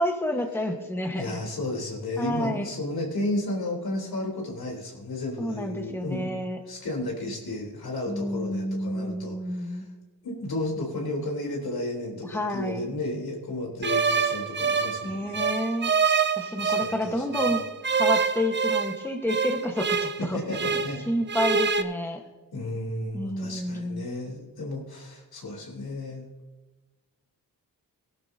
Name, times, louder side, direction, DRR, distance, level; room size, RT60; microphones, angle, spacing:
voice 1, 0.0-1.4 2.2-2.7 5.4-6.6 8.1-9.9 12.2-12.9 15.0-15.9 16.4-17.6 17.9-20.4 20.7-22.2 23.1-24.1, left 1 dB, 5° left, 3 dB, 1.2 m, -29 dB
voice 2, 1.2-6.4 6.7-9.8 10.2-15.5 16.6-17.5 20.3-21.0 22.5-26.2, left 1 dB, 75° left, 0 dB, 3.5 m, -33 dB
sound 1, 13.8-17.0 17.3-21.0 21.3-21.8, right 5 dB, 30° right, 0.6 m, -26 dB
19.0 x 11.5 x 2.8 m, 1.2 s
wide cardioid pair, 130°, 37 cm